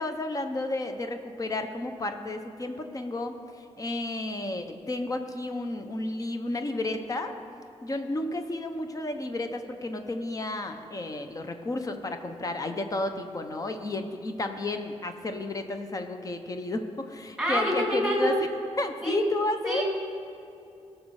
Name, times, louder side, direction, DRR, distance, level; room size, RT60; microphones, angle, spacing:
voice 1, 0.0-7.3 7.8-18.5 18.8-19.8, left 2 dB, 30° left, 6 dB, 0.8 m, -32 dB
voice 2, 17.4-18.4 19.0-19.2 19.6-19.8, equal, ahead, -3 dB, 2.8 m, -26 dB
17.5 x 6.3 x 4.8 m, 2.7 s
wide cardioid pair, 145°, 11 cm